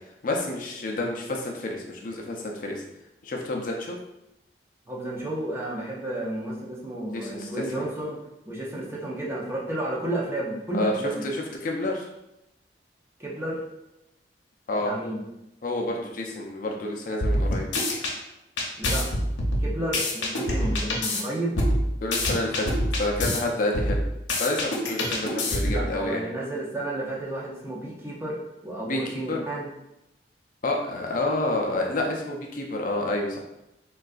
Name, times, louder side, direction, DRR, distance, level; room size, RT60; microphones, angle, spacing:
voice 1, 0.2-2.8 3.2-4.0 7.1-7.5 7.8-7.9 10.7-10.9 11.2-12.1 14.7-14.9 15.6-17.7 22.0-24.0 24.4-26.3 28.8-29.4 30.6-33.4, left 2 dB, 50° left, 1 dB, 0.4 m, -29 dB
voice 2, 4.9-8.2 8.5-11.2 13.2-13.6 14.9-15.2 18.8-19.2 19.6-21.6 25.0-25.3 25.7-28.4 28.6-29.7, right 1 dB, 15° right, -5 dB, 0.6 m, -32 dB
sound 1, 17.2-18.1 18.6-21.2 21.6-23.4 23.7-25.9, left 1 dB, 85° left, 0.7 m, -25 dB
3.7 x 2.3 x 2.4 m, 0.87 s
head